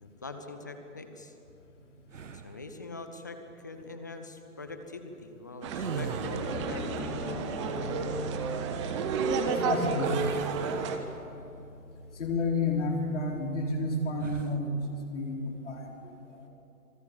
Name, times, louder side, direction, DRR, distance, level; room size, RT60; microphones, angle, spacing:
voice 1, 0.0-1.3 2.3-7.4, left 3 dB, 15° left, 7 dB, 0.6 m, -44 dB
sound 1, 2.1-2.7 5.6-6.7 10.0-11.4 11.9-12.1 14.1-14.6, right 5 dB, 55° right, 1.3 m, -41 dB
sound 2, 5.6-11.0, right 5 dB, 20° right, 1.2 m, -31 dB
sound 3, 6.0-13.9, left 1 dB, 75° left, 5.6 m, -42 dB
voice 2, 9.4-10.3 12.2-14.7 15.1-15.9 16.3-16.4, left 2 dB, 50° left, 1 dB, 4.1 m, -30 dB
26.5 x 20.0 x 7.2 m, 2.8 s
figure-of-eight pair, 135°, 45 cm